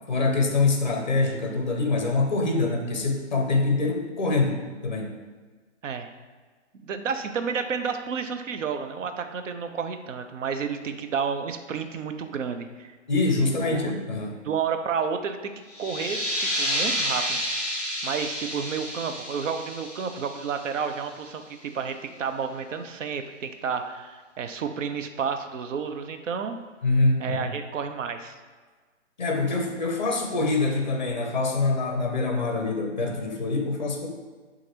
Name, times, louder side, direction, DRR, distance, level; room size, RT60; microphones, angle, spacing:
voice 1, 0.1-5.2 13.1-14.4 26.8-27.5 29.2-34.1, left 3 dB, 40° left, 3 dB, 0.5 m, -25 dB
voice 2, 6.8-13.0 13.6-13.9 14.4-15.5 15.8-17.4 18.0-26.6 27.2-28.4, right 6 dB, 85° right, 8 dB, 0.5 m, -31 dB
sound 1, 15.7-21.1, equal, 15° right, 1.0 m, -30 dB
6.0 x 2.5 x 2.8 m, 1.4 s
hypercardioid pair, 175°, 37 cm